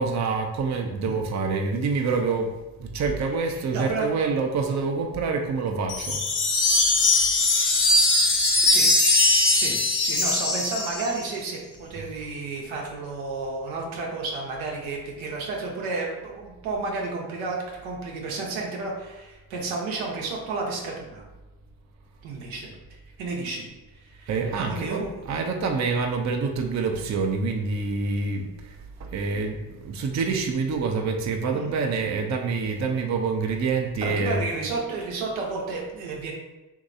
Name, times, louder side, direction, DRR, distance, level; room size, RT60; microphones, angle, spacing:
voice 1, 0.0-2.5 2.8-6.2 6.8-7.0 12.0-12.1 24.3-34.4, right 4 dB, 35° right, 3 dB, 0.5 m, -27 dB
voice 2, 3.5-4.1 8.6-9.2 9.5-21.3 22.2-22.8 23.2-23.7 24.0-24.3 24.7-25.2 31.5-31.7 34.0-36.3, right 3 dB, 80° right, -1 dB, 0.8 m, -32 dB
sound 1, 5.9-11.3, left 2 dB, 50° left, 0.9 m, -21 dB
3.0 x 2.7 x 2.6 m, 1.1 s
hypercardioid pair, 45°, 47 cm